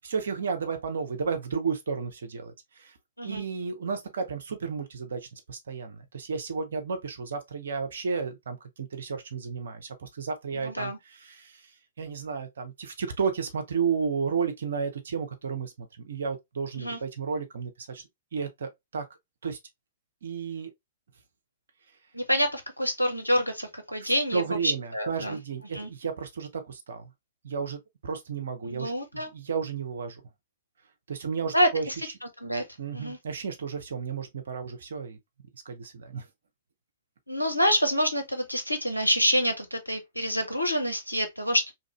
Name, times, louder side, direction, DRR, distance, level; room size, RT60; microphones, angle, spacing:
voice 1, 0.0-2.9 3.2-11.6 12.0-18.0 18.3-19.0 19.4-19.6 20.2-20.7 24.0-27.1 27.4-30.2 31.1-31.9 32.8-35.2 35.6-36.2, right 5 dB, 60° right, 0.8 m, -33 dB
voice 2, 10.5-11.0 16.8-17.0 22.1-25.4 25.7-25.9 28.6-29.3 31.5-31.9 32.4-32.6 32.9-33.2 37.3-41.7, equal, 90° left, 0.8 m, -27 dB
2.9 x 2.5 x 2.9 m
figure-of-eight pair, 110°, 0 cm